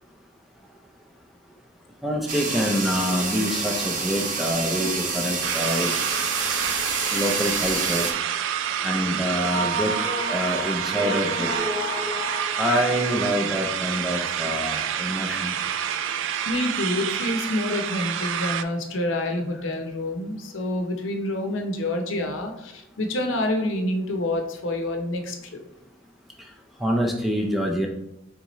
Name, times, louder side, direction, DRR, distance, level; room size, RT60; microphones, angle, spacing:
voice 1, 2.0-6.1 7.1-8.1 8.8-9.9 10.3-11.5 12.6-15.5 26.8-27.9, equal, ahead, 0 dB, 0.4 m, -26 dB
sound 1, 2.3-8.1, right 4 dB, 40° right, 0.6 m, -28 dB
sound 2, 5.4-18.6, right 9 dB, 75° right, 0.3 m, -28 dB
sound 3, 9.4-13.2, right 1 dB, 20° right, 0.9 m, -30 dB
voice 2, 16.4-25.6, left 1 dB, 80° left, 4 dB, 0.7 m, -27 dB
4.2 x 3.5 x 3.0 m, 0.84 s
head